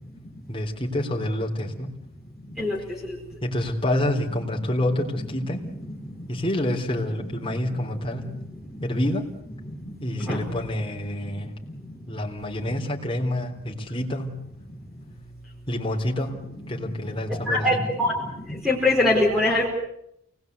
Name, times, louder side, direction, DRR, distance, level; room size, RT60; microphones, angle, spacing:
voice 1, 0.5-2.0 3.4-5.7 6.3-8.4 8.8-9.3 10.0-11.6 12.1-14.4 15.7-17.8, left 1 dB, 25° left, -1 dB, 3.6 m, -28 dB
voice 2, 17.3-18.1 18.5-19.7, left 2 dB, ahead, -2 dB, 4.4 m, -22 dB
28.5 x 20.0 x 8.1 m, 0.80 s
head